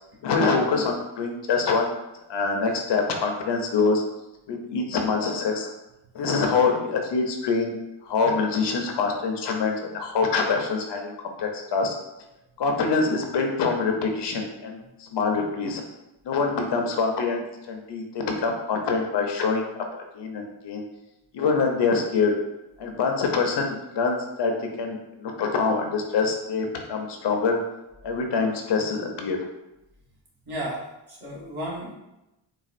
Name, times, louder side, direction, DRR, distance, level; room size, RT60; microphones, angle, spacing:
voice 1, 0.2-1.9 2.3-4.0 4.5-5.7 6.1-11.9 12.6-15.8 16.2-19.8 20.1-20.8 21.3-22.3 22.8-27.6 28.0-29.4, left 4 dB, 60° left, 3 dB, 0.6 m, -25 dB
voice 2, 30.5-31.9, right 1 dB, 50° right, -6 dB, 1.4 m, -33 dB
4.0 x 2.4 x 2.5 m, 0.94 s
cardioid pair, 115°, 48 cm